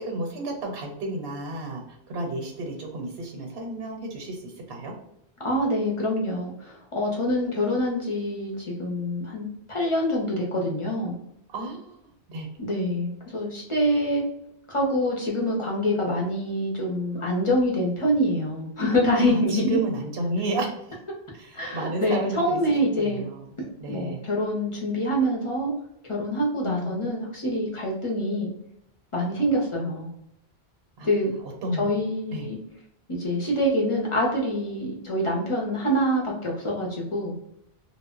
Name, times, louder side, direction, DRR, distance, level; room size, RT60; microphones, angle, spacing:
voice 1, 0.0-4.9 11.5-12.0 12.3-12.5 19.3-21.0 21.3-23.5 23.8-24.2 26.6-27.0 31.0-31.1 31.4-31.9 32.3-32.5, right 2 dB, 75° right, 2 dB, 0.9 m, -32 dB
voice 2, 5.4-11.2 12.6-14.2 14.7-19.8 21.5-23.2 23.6-25.7 26.1-28.5 29.1-30.1 31.0-31.3 31.8-32.6 33.1-37.3, equal, 35° left, -2 dB, 0.6 m, -25 dB
2.1 x 2.0 x 3.6 m, 0.78 s
omnidirectional pair, 1.1 m